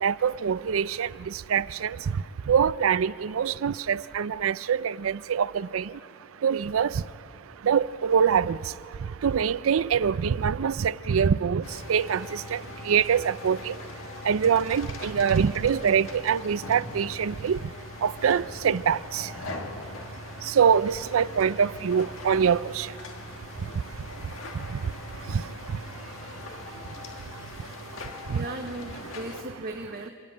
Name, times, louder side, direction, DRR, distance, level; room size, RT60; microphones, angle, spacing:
voice 1, 0.0-2.0 2.5-5.9 6.4-6.9 7.6-8.6 9.2-11.6 11.9-12.6 12.9-13.7 14.3-17.6 18.0-19.3 20.5-22.9 25.3-25.4 28.3-28.4, right 7 dB, 85° right, 0.4 m, -24 dB
sound 1, 11.6-29.4, left 2 dB, 75° left, 1.7 m, -41 dB
voice 2, 28.3-30.1, right 2 dB, 50° right, 1.2 m, -36 dB
28.0 x 11.0 x 8.7 m
head